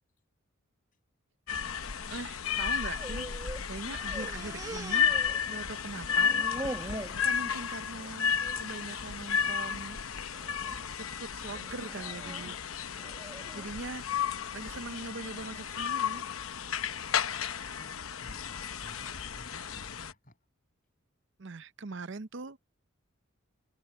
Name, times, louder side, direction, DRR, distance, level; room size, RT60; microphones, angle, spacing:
sound 1, 1.5-20.1, left 7 dB, 85° left, 0.9 m, -33 dB
voice 1, 2.1-3.3 3.6-5.1 5.5-6.4 7.2-10.0 10.9-12.6 13.5-14.1 14.5-16.3 21.4-22.6, right 3 dB, 60° right, 0.7 m, -41 dB
sound 2, 2.6-3.6 3.9-5.8 6.1-7.2 7.7-8.1 8.4-8.6 9.4-9.8 10.3-10.7 11.6-13.8, right 1 dB, 15° right, 1.3 m, -42 dB
sound 3, 2.6-12.2, right 5 dB, 80° right, 5.2 m, -63 dB
voice 2, 17.8-20.4, equal, 40° left, 7.7 m, -54 dB
open air
head